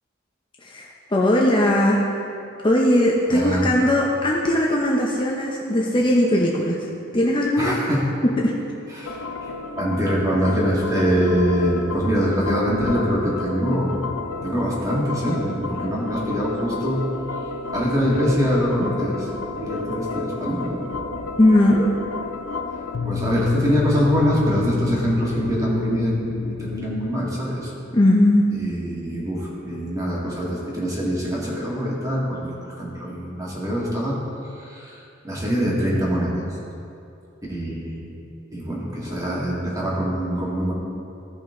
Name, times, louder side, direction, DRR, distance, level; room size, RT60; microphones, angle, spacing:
voice 1, 0.6-2.3 2.6-6.8 7.1-7.7 8.4-8.5 21.4-21.9 27.9-28.5, left 1 dB, 25° left, -2 dB, 0.7 m, -19 dB
voice 2, 3.3-3.7 7.6-8.1 8.9-9.5 9.8-14.1 14.4-17.0 17.7-20.8 23.0-26.3 26.6-27.7 28.5-34.2 34.6-36.5 37.5-38.1 38.5-40.7, equal, 15° right, -5 dB, 2.0 m, -24 dB
sound 1, 9.0-27.1, left 4 dB, 75° left, 0.6 m, -31 dB
15.0 x 5.6 x 3.8 m, 2.6 s
head